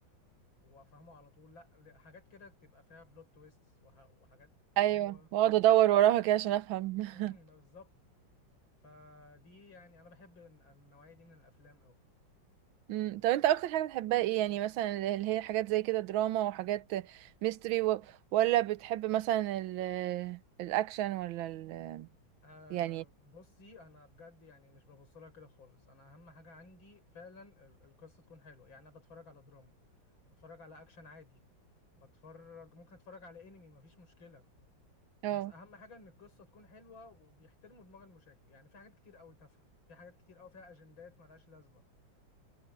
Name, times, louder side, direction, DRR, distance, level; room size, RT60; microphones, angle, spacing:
voice 1, 0.6-4.5 4.9-5.3 7.1-7.9 8.8-12.0 22.4-29.7 30.3-31.4 32.0-34.5 35.2-41.8, left 3 dB, 85° left, 6.1 m, -56 dB
voice 2, 4.8-7.3 12.9-18.1 18.3-22.1 22.7-23.0 35.2-35.5, right 13 dB, 85° right, 1.5 m, -29 dB
omnidirectional pair, 2.1 m